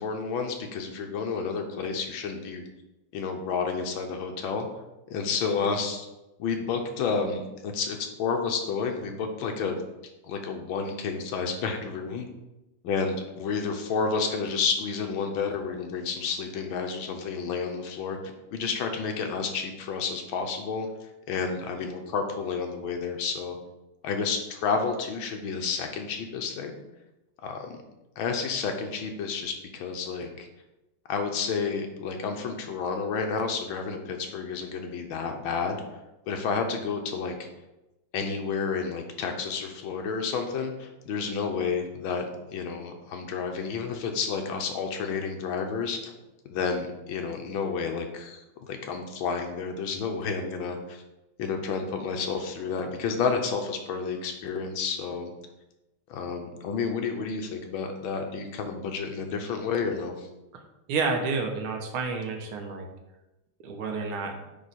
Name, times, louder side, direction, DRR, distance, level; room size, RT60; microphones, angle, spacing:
voice 1, 0.0-2.6 3.1-4.7 5.1-6.1 6.4-9.8 10.2-12.3 12.8-23.6 24.0-26.8 27.4-27.8 28.2-30.5 31.1-35.8 36.3-37.5 38.1-42.3 42.5-46.1 46.5-51.0 51.4-55.3 56.1-60.3, left 5 dB, 75° left, 4 dB, 1.5 m, -30 dB
voice 2, 60.9-62.9 63.6-64.3, right 4 dB, 75° right, 3 dB, 1.7 m, -29 dB
9.1 x 3.1 x 4.2 m, 0.98 s
omnidirectional pair, 2.3 m